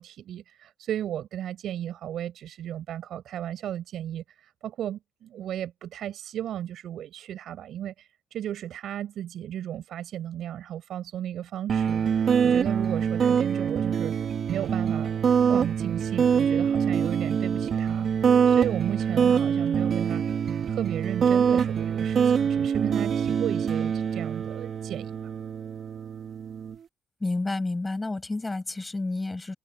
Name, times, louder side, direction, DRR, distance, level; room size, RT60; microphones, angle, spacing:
voice 1, 0.0-14.1 14.5-15.1 15.5-20.2 20.7-25.2, right 11 dB, 75° right, 6.4 m, -34 dB
sound 1, 11.7-26.8, right 7 dB, 55° right, 2.0 m, -24 dB
voice 2, 27.2-29.5, left 2 dB, 20° left, 6.7 m, -30 dB
cardioid pair, 90°, 0 cm